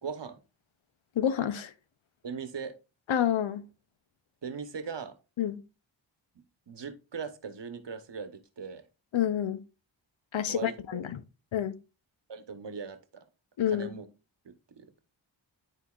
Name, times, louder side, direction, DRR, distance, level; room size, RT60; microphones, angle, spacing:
voice 1, 0.0-0.4 2.2-2.8 4.4-5.2 6.7-8.8 10.5-11.0 12.3-13.2 13.7-14.1 14.4-14.9, right 5 dB, 65° right, 1.1 m, -39 dB
voice 2, 1.2-1.7 3.1-3.7 5.4-5.6 9.1-9.6 10.3-11.2 11.5-11.7 13.6-13.9, left 10 dB, 85° left, 0.7 m, -28 dB
11.5 x 4.0 x 2.4 m
cardioid pair, 45°, 46 cm